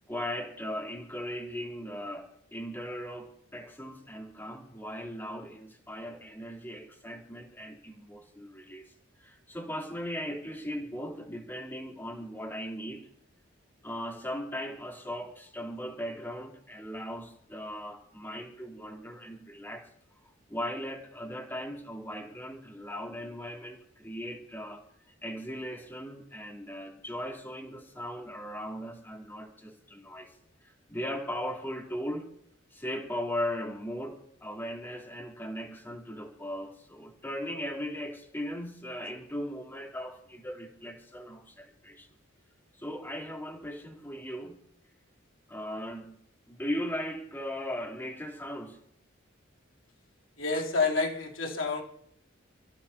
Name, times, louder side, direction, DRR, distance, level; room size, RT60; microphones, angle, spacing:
voice 1, 0.1-8.9 9.2-13.1 13.8-19.9 20.2-24.8 25.2-30.3 30.6-32.3 32.7-42.1 42.8-44.6 45.5-46.2 46.5-48.8, equal, 10° left, 3.3 m, -38 dB
voice 2, 50.4-51.8, left 4 dB, 75° left, 3.3 m, -28 dB
29.5 x 16.0 x 2.9 m
head